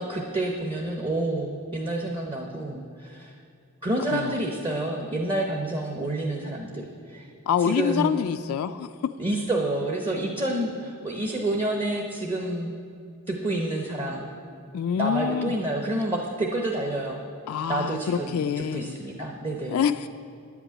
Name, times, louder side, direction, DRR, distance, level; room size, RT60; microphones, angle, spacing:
voice 1, 0.0-3.3 3.8-7.3 7.6-8.2 9.2-12.7 13.3-14.3 15.0-17.2 17.7-19.8, right 1 dB, 25° right, 0 dB, 0.7 m, -28 dB
voice 2, 7.5-9.1 14.7-15.5 17.5-19.0 19.7-20.1, left 8 dB, 70° left, 10 dB, 0.3 m, -26 dB
10.0 x 6.0 x 8.4 m, 2.4 s
head